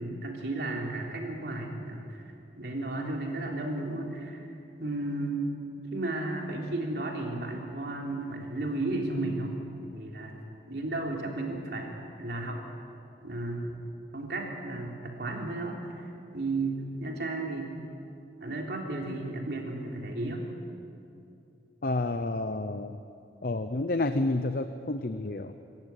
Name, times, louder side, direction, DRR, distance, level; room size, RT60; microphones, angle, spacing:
voice 1, 0.0-2.2 2.6-4.4 4.8-5.5 5.9-10.4 10.7-12.6 13.2-13.8 14.1-16.1 16.3-17.8 18.4-20.5, right 2 dB, 60° right, 0 dB, 3.4 m, -34 dB
voice 2, 21.8-23.0 23.4-25.6, left 2 dB, 50° left, 9 dB, 0.7 m, -30 dB
26.0 x 14.5 x 9.1 m, 2.6 s
head